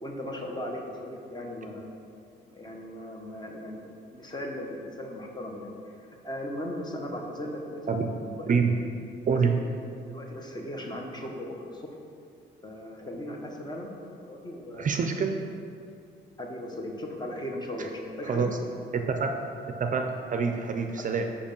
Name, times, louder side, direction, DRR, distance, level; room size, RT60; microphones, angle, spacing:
voice 1, 0.0-1.9 2.5-5.9 6.2-8.1 8.4-8.5 9.3-9.5 10.1-11.9 12.6-13.9 14.2-15.0 16.4-18.5 21.1-21.3, left 1 dB, 20° left, 1 dB, 1.0 m, -37 dB
voice 2, 8.5-8.8 9.3-9.5 14.7-15.3 17.8-17.9 18.2-18.5 18.9-19.3 19.8-21.3, right 5 dB, 40° right, 4 dB, 0.5 m, -26 dB
5.1 x 5.0 x 5.3 m, 2.5 s
cardioid pair, 90°, 20 cm